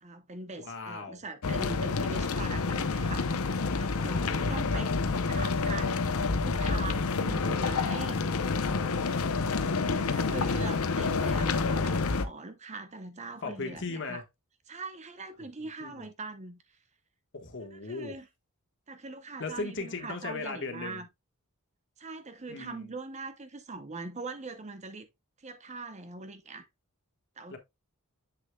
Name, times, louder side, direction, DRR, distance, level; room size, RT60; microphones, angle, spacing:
voice 1, 0.0-5.0 5.3-6.0 6.2-9.0 9.8-14.2 14.7-16.6 17.7-18.3 18.9-21.1 22.0-25.1 25.4-26.6 27.4-27.6, right 3 dB, 30° right, 0.8 m, -42 dB
voice 2, 0.5-1.2 3.9-4.5 13.4-14.2 15.8-16.0 17.3-18.1 19.4-21.0 22.5-22.9 27.5-27.6, left 3 dB, 55° left, 1.5 m, -38 dB
sound 1, 1.4-12.2, left 4 dB, 80° left, 0.8 m, -28 dB
7.7 x 6.5 x 2.3 m
head